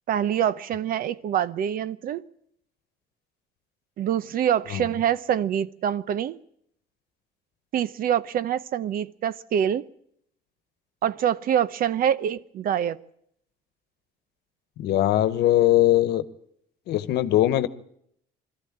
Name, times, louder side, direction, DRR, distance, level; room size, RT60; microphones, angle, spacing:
voice 1, 0.1-2.2 4.0-6.4 7.7-9.8 11.0-13.0, right 9 dB, 60° right, 0.8 m, -25 dB
voice 2, 14.8-16.2 16.9-17.7, left 14 dB, 75° left, 1.1 m, -21 dB
22.0 x 14.0 x 8.8 m
cardioid pair, 110°, 17 cm